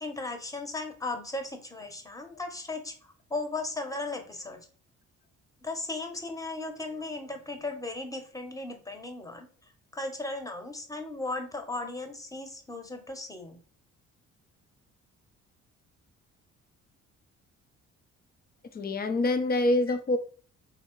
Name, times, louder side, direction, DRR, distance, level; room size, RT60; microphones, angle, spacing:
voice 1, 0.0-2.9 3.3-4.6 5.6-9.5 9.9-13.6, left 2 dB, 10° left, 1.0 m, -36 dB
voice 2, 18.7-20.2, left 2 dB, 30° left, 0.6 m, -26 dB
3.6 x 2.8 x 4.5 m
cardioid pair, 90°, 30 cm